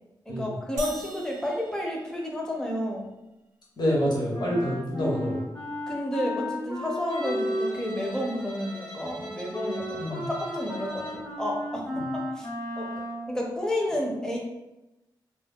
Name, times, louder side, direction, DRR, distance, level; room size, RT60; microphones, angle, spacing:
voice 1, 0.3-3.1 5.9-12.5 12.8-14.4, left 1 dB, 5° left, -2 dB, 0.5 m, -31 dB
sound 1, 0.8-2.7, right 2 dB, 45° right, 0.6 m, -41 dB
voice 2, 3.8-5.4 10.0-10.3, equal, 60° left, -5 dB, 0.8 m, -27 dB
Wind instrument woodwind instrument, 4.3-13.3, left 1 dB, 75° left, 1.1 m, -34 dB
Bowed string instrument, 7.1-11.3, left 1 dB, 90° left, 0.6 m, -42 dB
2.2 x 2.0 x 3.4 m, 0.95 s
wide cardioid pair, 175°, 8 cm